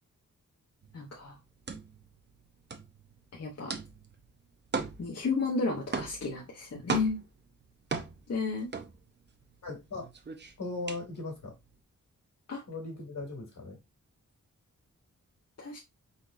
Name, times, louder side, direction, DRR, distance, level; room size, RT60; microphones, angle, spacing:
sound 1, 0.8-9.5 9.8-11.7, right 4 dB, 35° right, 0.6 m, -38 dB
voice 1, 0.9-1.4 3.3-3.7 5.0-7.2 8.3-8.7 12.5-12.6 15.6-15.8, left 4 dB, 50° left, 1.0 m, -32 dB
voice 2, 9.6-10.1 10.6-11.5 12.7-13.8, left 2 dB, 70° left, 2.2 m, -38 dB
4.7 x 4.1 x 2.5 m
wide cardioid pair, 160°, 32 cm